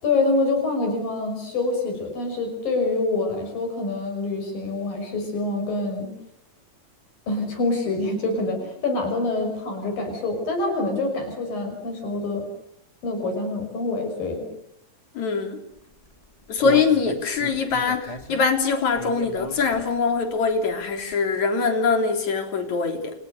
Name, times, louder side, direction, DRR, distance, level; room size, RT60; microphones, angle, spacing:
voice 1, 0.0-6.1 7.3-12.5 13.0-14.5, left 2 dB, 75° left, 7.6 m, -26 dB
voice 2, 15.2-15.6 16.5-23.1, left 5 dB, 55° left, 4.7 m, -23 dB
Human voice, 16.0-20.2 20.6-20.7 21.1-21.2, left 1 dB, 10° left, 1.8 m, -34 dB
30.0 x 29.5 x 6.7 m
omnidirectional pair, 4.1 m